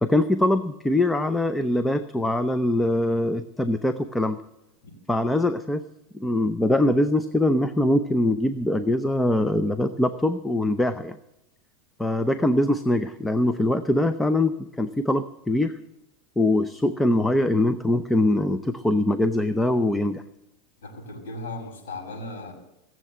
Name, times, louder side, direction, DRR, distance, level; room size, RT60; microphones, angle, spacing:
voice 1, 0.0-4.4 5.1-5.8 6.1-11.2 12.0-15.8 16.4-20.2, left 1 dB, 5° left, 10 dB, 0.7 m, -23 dB
voice 2, 20.8-22.5, left 2 dB, 90° left, 1 dB, 6.5 m, -37 dB
18.5 x 7.7 x 9.5 m, 0.87 s
supercardioid pair, 135°, 0 cm